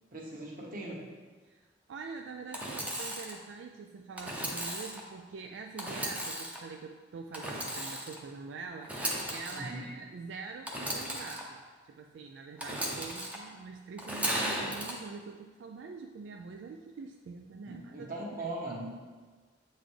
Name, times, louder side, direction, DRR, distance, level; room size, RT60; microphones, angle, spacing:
voice 1, 0.1-1.0 9.5-9.9 17.7-19.0, right 1 dB, 50° right, -3 dB, 1.3 m, -39 dB
voice 2, 1.4-8.9 9.3-11.6 11.9-18.1 18.4-18.5, right 4 dB, 80° right, 3 dB, 0.3 m, -45 dB
Engine / Sawing, 2.5-3.4 4.2-5.0 5.8-6.6 7.3-8.2 8.8-9.6 10.6-11.4 12.6-13.4 14.0-14.9, right 1 dB, 10° right, 0.6 m, -35 dB
8.0 x 4.0 x 3.3 m, 1.4 s
head